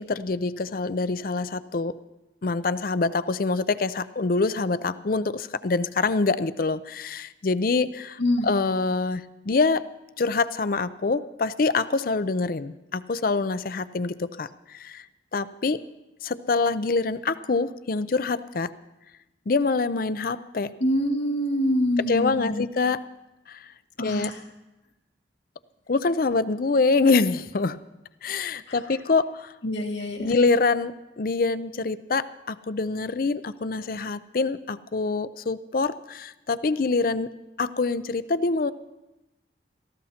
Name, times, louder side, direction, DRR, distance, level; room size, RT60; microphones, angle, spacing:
voice 1, 0.0-2.0 2.4-9.9 10.2-15.0 15.3-15.8 16.2-18.7 19.5-20.7 22.1-23.1 23.5-23.7 24.0-24.3 25.9-27.8 28.2-29.5 30.2-37.3 37.6-38.7, left 3 dB, 50° left, 14 dB, 0.5 m, -25 dB
voice 2, 8.2-8.5 20.8-22.7 24.0-24.4 28.7-28.8 29.6-30.4, equal, 75° left, 1 dB, 2.2 m, -25 dB
29.5 x 15.0 x 2.9 m, 0.99 s
head